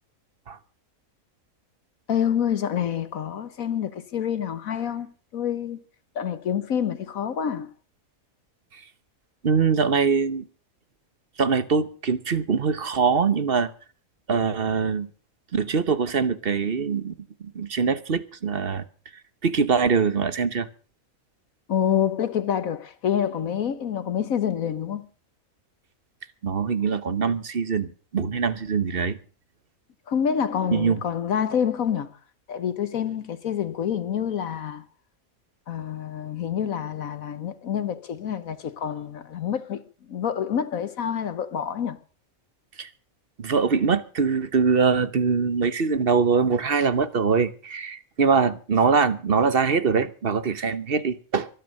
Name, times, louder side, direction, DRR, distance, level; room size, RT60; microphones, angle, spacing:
voice 1, 2.1-5.8 6.1-7.7 21.7-25.1 30.1-32.1 32.5-34.8 35.7-39.8 40.1-42.0, left 8 dB, 70° left, 1.4 m, -27 dB
voice 2, 9.4-10.5 11.4-13.7 14.3-15.1 15.5-17.1 17.4-18.8 19.4-20.7 26.4-29.2 30.7-31.0 42.8-42.9 43.4-51.5, right 5 dB, 45° right, 1.2 m, -23 dB
23.5 x 9.2 x 6.6 m
omnidirectional pair, 1.5 m